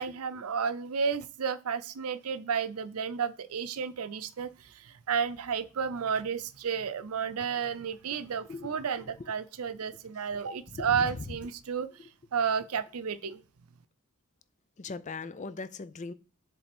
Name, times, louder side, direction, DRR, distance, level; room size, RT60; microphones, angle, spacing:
voice 1, 0.0-11.9 12.3-13.4, right 6 dB, 90° right, 0.6 m, -32 dB
voice 2, 10.7-11.1 14.8-16.1, left 4 dB, 35° left, 0.5 m, -39 dB
7.4 x 3.4 x 4.3 m
head